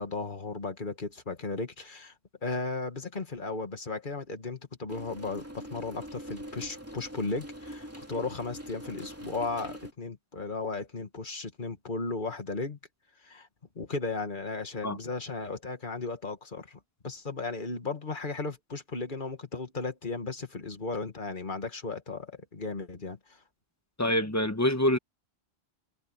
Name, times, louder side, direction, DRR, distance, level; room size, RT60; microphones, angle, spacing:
voice 1, 0.0-2.1 2.4-12.8 13.2-13.5 13.8-23.4, left 3 dB, 50° left, 2.1 m, -35 dB
sound 1, 4.9-9.9, equal, 15° right, 2.9 m, -43 dB
voice 2, 24.0-25.0, left 1 dB, 15° left, 1.2 m, -25 dB
omnidirectional pair, 1.1 m